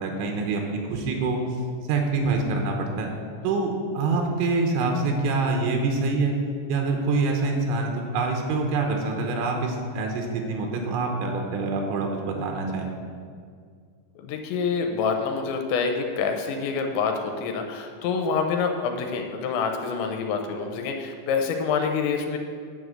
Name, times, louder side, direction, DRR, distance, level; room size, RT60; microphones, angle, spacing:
voice 1, 0.0-1.4 1.9-3.1 3.4-6.4 6.7-12.9, right 3 dB, 85° right, 2 dB, 3.3 m, -25 dB
voice 2, 14.2-22.4, left 5 dB, 85° left, 4 dB, 3.0 m, -27 dB
9.7 x 5.1 x 7.8 m, 2.1 s
omnidirectional pair, 5.3 m